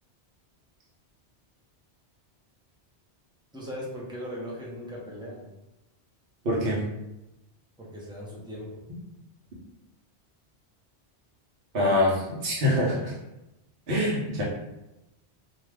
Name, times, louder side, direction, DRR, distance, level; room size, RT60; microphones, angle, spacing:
voice 1, 3.5-5.5 7.8-8.8, equal, 5° right, -5 dB, 0.5 m, -38 dB
voice 2, 6.4-6.8 11.7-13.1 13.9-14.4, left 1 dB, 60° right, -6 dB, 1.0 m, -24 dB
2.5 x 2.3 x 3.3 m, 0.92 s
omnidirectional pair, 1.1 m